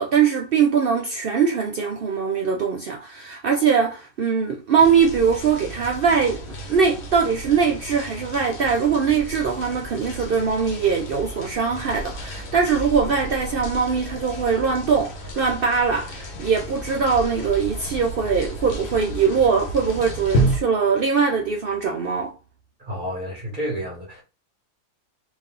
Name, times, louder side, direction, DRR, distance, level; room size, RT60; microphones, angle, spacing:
voice 1, 0.0-22.3, right 6 dB, 85° right, 0.5 m, -21 dB
sound 1, 4.8-20.6, right 1 dB, 50° left, 0.9 m, -32 dB
voice 2, 22.8-24.2, equal, 30° right, 2.1 m, -30 dB
4.1 x 2.7 x 3.7 m
omnidirectional pair, 1.7 m